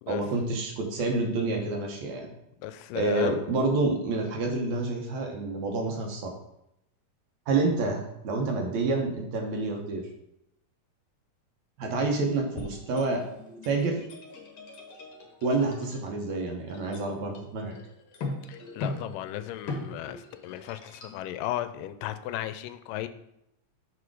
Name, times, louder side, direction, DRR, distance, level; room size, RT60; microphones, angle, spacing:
voice 1, 0.1-2.3 3.0-6.3 7.5-10.0 11.8-13.2 13.6-14.0 15.4-17.7, right 3 dB, 65° right, 1 dB, 2.0 m, -28 dB
voice 2, 2.6-3.4 18.5-23.1, left 13 dB, 85° left, 11 dB, 2.2 m, -35 dB
sound 1, 12.5-21.2, left 2 dB, 60° left, 1.7 m, -41 dB
6.3 x 4.9 x 4.7 m, 0.82 s
omnidirectional pair, 3.8 m